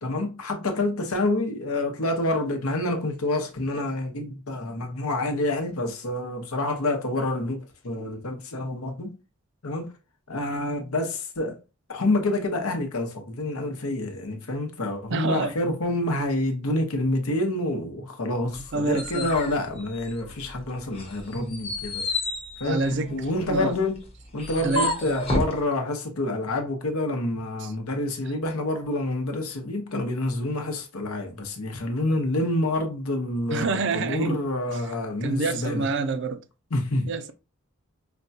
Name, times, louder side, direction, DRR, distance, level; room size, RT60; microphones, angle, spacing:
voice 1, 0.0-9.1 9.6-9.9 10.3-11.6 11.9-22.1 22.6-24.0 24.3-35.9 36.7-37.1, left 2 dB, 85° left, 0.9 m, -28 dB
voice 2, 15.1-15.5 18.7-19.3 22.6-23.2 23.5-23.7 24.6-24.9 27.6-27.7 33.5-34.4 35.2-36.4 37.0-37.3, right 3 dB, 55° right, 0.4 m, -27 dB
sound 1, 18.5-20.5 20.9-25.6, left 2 dB, 25° left, 0.9 m, -31 dB
5.0 x 2.2 x 2.7 m
head